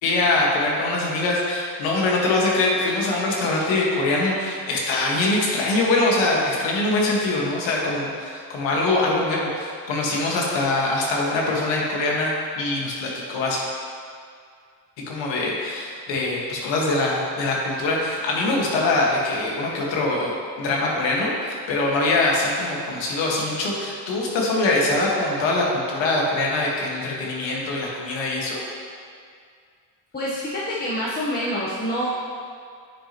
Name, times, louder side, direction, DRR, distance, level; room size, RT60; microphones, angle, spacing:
voice 1, 0.0-13.7 15.1-28.6, left 2 dB, 90° left, -3 dB, 1.7 m, -23 dB
voice 2, 30.1-32.1, equal, 20° left, -7 dB, 1.1 m, -26 dB
9.6 x 6.2 x 3.0 m, 2.2 s
cardioid pair, 120°, 44 cm